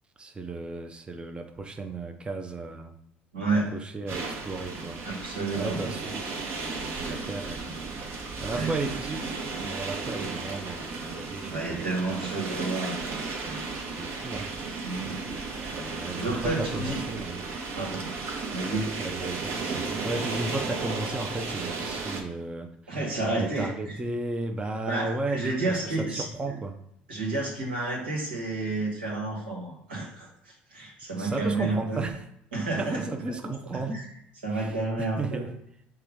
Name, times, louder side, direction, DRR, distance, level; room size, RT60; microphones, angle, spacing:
voice 1, 0.2-3.0 3.5-5.0 5.5-8.0 8.4-9.4 9.6-12.4 14.0-14.5 15.0-17.5 19.0-23.0 23.3-26.8 31.2-32.3 32.8-34.0 34.5-35.5, right 2 dB, 20° right, 5 dB, 0.5 m, -35 dB
voice 2, 3.3-3.7 5.0-5.8 7.0-7.2 8.5-8.7 11.5-13.7 14.8-15.2 15.7-17.0 17.8-18.1 18.5-18.9 22.9-23.9 24.9-26.6 27.1-30.3 30.7-32.0 32.5-33.0 33.7-34.0 34.4-35.5, right 2 dB, 90° right, -2 dB, 1.2 m, -30 dB
sound 1, 4.1-22.2, right 4 dB, 55° right, 0.9 m, -34 dB
5.7 x 2.2 x 3.4 m, 0.76 s
hypercardioid pair, 70°, 5 cm